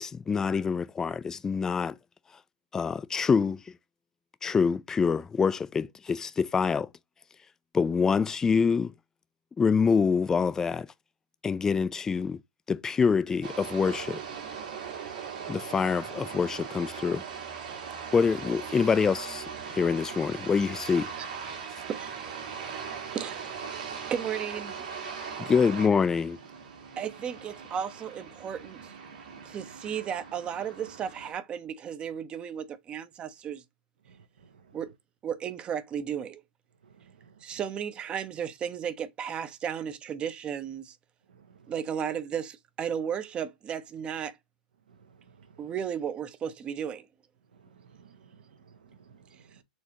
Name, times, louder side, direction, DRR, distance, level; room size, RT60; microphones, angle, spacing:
voice 1, 0.0-1.9 2.7-3.6 4.4-6.9 7.7-8.9 9.6-10.9 11.4-12.4 12.7-14.2 15.5-17.2 18.1-21.1 25.4-26.4, left 5 dB, 10° left, 0.3 m, -26 dB
sound 1, 13.4-31.3, right 6 dB, 70° right, 1.8 m, -40 dB
voice 2, 23.1-23.6 24.1-24.8 27.0-28.9 29.4-33.6 34.7-34.9 35.2-36.4 37.4-41.0 41.7-44.4 45.6-47.1, right 8 dB, 20° right, 0.6 m, -34 dB
voice 3, 37.0-37.3 41.3-41.6 45.4-45.5 47.5-47.6 47.9-48.3 48.6-49.6, right 6 dB, 85° right, 1.1 m, -57 dB
4.4 x 3.3 x 2.9 m
hypercardioid pair, 135°, 5 cm